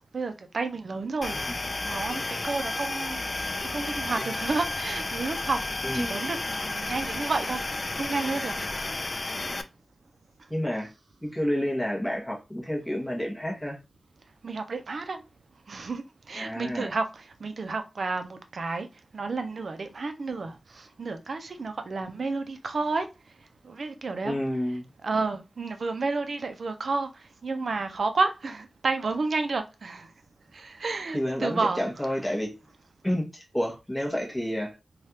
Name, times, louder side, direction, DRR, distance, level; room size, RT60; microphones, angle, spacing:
voice 1, 0.1-1.4 1.8-3.2 3.7-7.6 7.9-8.7 14.4-15.2 15.7-18.9 19.1-23.1 23.6-24.4 25.0-27.1 27.4-30.1 30.5-31.8, right 3 dB, 75° right, 0.5 m, -31 dB
sound 1, 1.2-9.6, left 2 dB, 50° left, 0.3 m, -32 dB
voice 2, 5.8-6.2 10.5-10.9 11.2-13.8 16.4-16.9 24.2-24.9 31.1-32.5 33.0-34.8, equal, 15° left, 1.0 m, -29 dB
3.2 x 2.3 x 2.7 m
wide cardioid pair, 70°, 0 cm